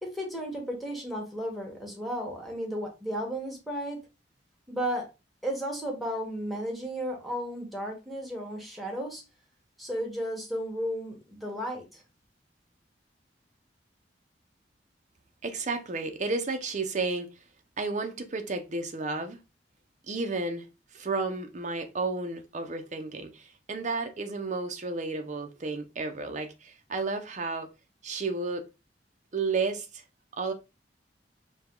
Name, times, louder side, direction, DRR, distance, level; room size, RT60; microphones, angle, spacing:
voice 1, 0.0-4.0 4.7-5.1 5.4-9.2 9.8-12.0, equal, ahead, 1.4 m, -34 dB
voice 2, 15.4-17.3 17.8-19.4 20.1-27.7 28.0-28.7 29.3-30.0 30.4-30.5, right 3 dB, 45° right, 0.7 m, -32 dB
5.0 x 2.3 x 3.7 m
head